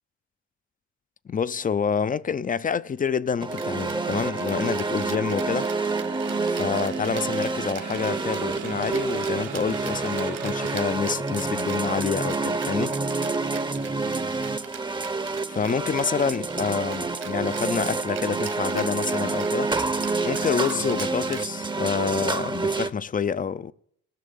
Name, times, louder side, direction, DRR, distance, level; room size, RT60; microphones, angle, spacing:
voice 1, 1.3-5.7 6.5-13.0 15.5-19.7 20.2-23.7, left 6 dB, 30° left, 0.5 m, -27 dB
sound 1, 3.4-22.9, right 3 dB, 15° right, 0.8 m, -28 dB
Rattle (instrument), 3.5-22.0, right 8 dB, 55° right, 1.5 m, -43 dB
sound 2, 3.8-10.9, right 8 dB, 75° right, 1.4 m, -40 dB
15.0 x 6.4 x 8.4 m
cardioid pair, 90°, 30 cm